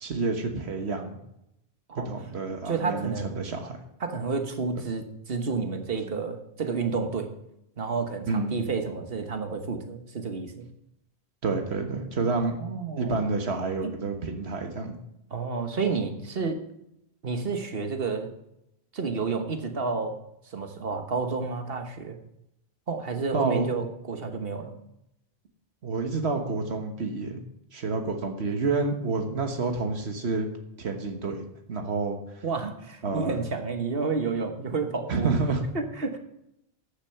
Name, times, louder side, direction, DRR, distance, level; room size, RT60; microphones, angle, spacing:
voice 1, 0.0-1.2 2.0-3.8 8.2-8.5 11.4-12.6 13.0-15.0 23.3-23.7 25.8-27.4 27.7-30.5 30.8-32.4 33.0-33.4 35.1-35.6, right 3 dB, 85° right, 5 dB, 1.6 m, -29 dB
voice 2, 2.6-3.4 4.0-7.3 7.8-10.7 12.6-13.3 13.8-13.9 15.3-16.6 17.2-18.3 18.9-20.2 20.5-22.2 22.9-24.7 32.4-35.3 35.7-36.2, right 4 dB, 65° right, 6 dB, 1.5 m, -30 dB
13.5 x 6.9 x 5.8 m, 0.81 s
omnidirectional pair, 1.1 m